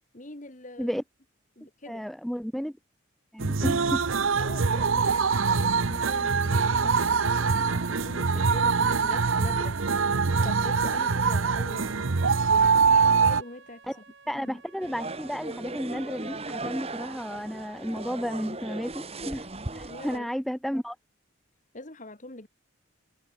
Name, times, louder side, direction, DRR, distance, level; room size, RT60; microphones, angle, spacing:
voice 1, 0.1-1.0 1.6-2.0 4.4-10.1 10.4-12.1 12.5-13.8 14.3-14.6 19.9-20.3 21.7-22.5, left 2 dB, 40° left, 2.0 m, -43 dB
voice 2, 1.9-2.7 3.3-4.0 13.9-14.0 14.3-19.5 19.7-21.0, equal, ahead, 0.8 m, -32 dB
sound 1, 3.4-13.4, right 5 dB, 90° right, 0.9 m, -24 dB
sound 2, 7.6-18.6, right 4 dB, 65° right, 4.2 m, -53 dB
sound 3, 14.8-20.2, right 2 dB, 30° right, 2.2 m, -37 dB
head